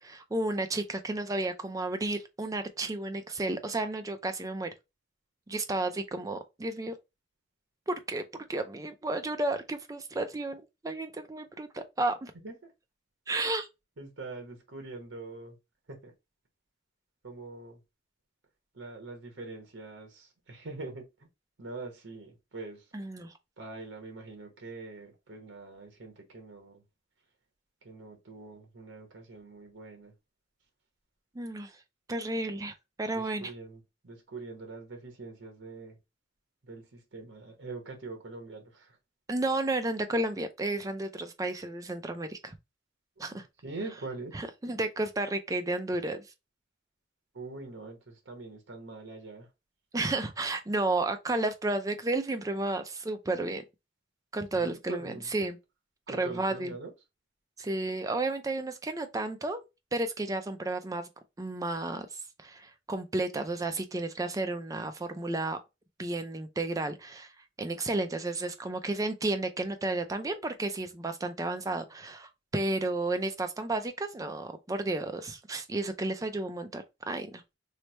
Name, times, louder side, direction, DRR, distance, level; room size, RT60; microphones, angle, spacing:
voice 1, 0.0-4.7 5.5-6.9 7.9-12.3 13.3-13.7 22.9-23.3 31.4-31.7 32.1-33.5 39.3-42.5 43.2-43.5 44.3-46.2 49.9-53.6 54.3-55.6 56.1-56.7 57.6-59.6 59.9-61.1 61.4-62.1 62.4-65.6 66.0-67.3 67.6-77.4, right 2 dB, 20° right, 0.4 m, -32 dB
voice 2, 14.0-15.6 15.9-16.1 17.2-17.8 18.7-21.3 21.6-22.9 23.6-26.8 27.8-30.1 33.1-36.0 36.6-39.0 43.3-44.4 47.3-49.5 54.5-55.3 56.1-56.9, right 3 dB, 70° right, 1.0 m, -43 dB
3.2 x 2.1 x 4.2 m
head